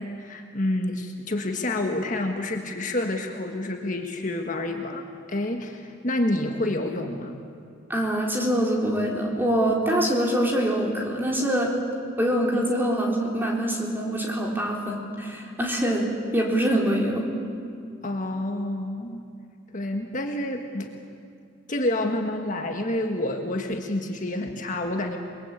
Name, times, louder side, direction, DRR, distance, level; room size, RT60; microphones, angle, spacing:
voice 1, 0.0-7.4 12.5-12.6 18.0-19.2 19.7-20.9 21.7-25.2, left 1 dB, 40° left, 3 dB, 1.6 m, -28 dB
voice 2, 7.9-11.7 12.2-16.1 16.3-17.3, right 1 dB, 10° right, -1 dB, 4.0 m, -24 dB
29.0 x 22.0 x 8.5 m, 2.4 s
head